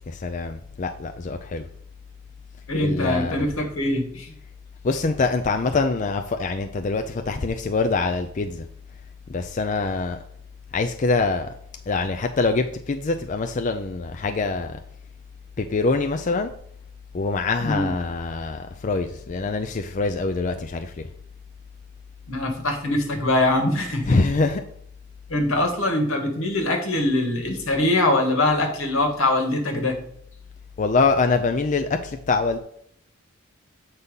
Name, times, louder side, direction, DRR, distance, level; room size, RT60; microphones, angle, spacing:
voice 1, 0.1-1.7 2.8-3.5 4.8-8.6 9.3-10.2 10.7-11.5 11.9-14.8 15.6-16.5 17.1-21.1 24.0-24.6 30.8-32.6, left 3 dB, 40° left, 0.4 m, -24 dB
voice 2, 2.7-4.3 17.6-17.9 22.3-24.2 25.3-30.0, left 1 dB, 85° left, 1.7 m, -23 dB
8.1 x 4.1 x 5.4 m
head